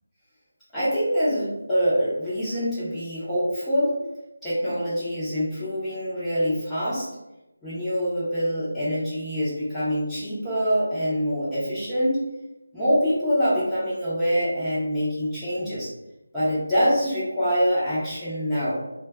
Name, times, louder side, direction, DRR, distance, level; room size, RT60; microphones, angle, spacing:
voice 1, 0.7-4.0 4.4-7.1 7.6-12.2 12.7-15.9 16.3-18.8, equal, 5° left, -14 dB, 0.7 m, -25 dB
2.5 x 2.2 x 2.3 m, 0.96 s
figure-of-eight pair, 160°, 0 cm